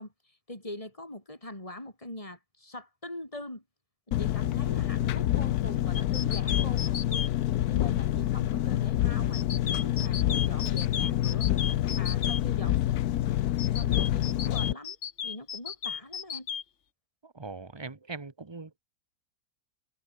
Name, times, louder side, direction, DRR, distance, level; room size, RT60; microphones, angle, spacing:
voice 1, 0.0-3.6 4.2-7.3 7.7-11.5 11.9-12.8 13.7-15.0 15.2-16.5, left 1 dB, 20° left, 6.2 m, -42 dB
Engine, 4.1-14.7, left 13 dB, 70° left, 1.1 m, -27 dB
sound 1, 5.9-7.3 9.3-12.4 13.6-16.6, left 7 dB, 45° left, 1.3 m, -34 dB
voice 2, 17.2-18.8, right 4 dB, 20° right, 1.0 m, -41 dB
omnidirectional pair, 1.8 m